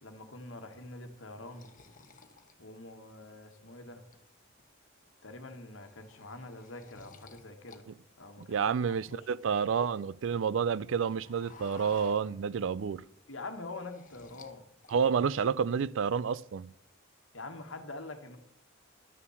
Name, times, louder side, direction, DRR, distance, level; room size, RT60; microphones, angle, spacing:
voice 1, 0.0-1.7 2.6-4.0 5.2-7.8 8.2-9.3 13.3-14.7 17.3-18.4, left 2 dB, 70° left, 1.5 m, -45 dB
sound 1, 0.7-3.4 3.9-4.6 5.0-5.2 5.5-7.8 8.1-10.2 10.5-12.8 13.1-14.6 14.8-15.4, left 4 dB, 40° left, 1.0 m, -56 dB
voice 2, 8.4-13.0 14.9-16.7, right 6 dB, 70° right, 0.4 m, -29 dB
11.0 x 6.9 x 7.0 m
head